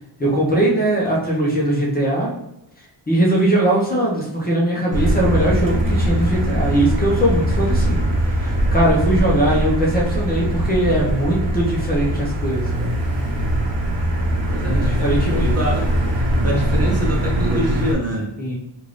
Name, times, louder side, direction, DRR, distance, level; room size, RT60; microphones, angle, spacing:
voice 1, 0.2-2.3 3.1-8.0 8.3-12.9 14.6-15.7 18.4-18.5, right 1 dB, 20° left, -4 dB, 0.8 m, -20 dB
Motor vehicle (road), 4.9-17.9, right 1 dB, 75° right, 0.8 m, -21 dB
voice 2, 14.5-15.9 16.4-18.3, equal, 35° right, -2 dB, 0.7 m, -25 dB
3.5 x 2.6 x 3.2 m, 0.83 s
wide cardioid pair, 130°, 45 cm